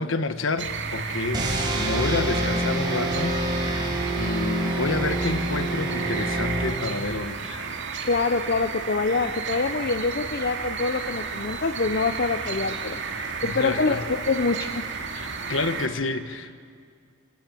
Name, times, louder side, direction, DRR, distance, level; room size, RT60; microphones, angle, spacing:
voice 1, 0.0-7.8 13.4-14.0 15.1-16.6, left 3 dB, 70° left, 11 dB, 1.4 m, -29 dB
sound 1, 0.6-15.9, right 5 dB, 65° right, 2.4 m, -33 dB
sound 2, 1.3-7.2, right 1 dB, 20° right, 6.0 m, -27 dB
voice 2, 8.0-13.0 13.4-14.9, left 4 dB, 50° left, 10 dB, 0.7 m, -25 dB
28.0 x 27.0 x 7.6 m, 2.1 s
head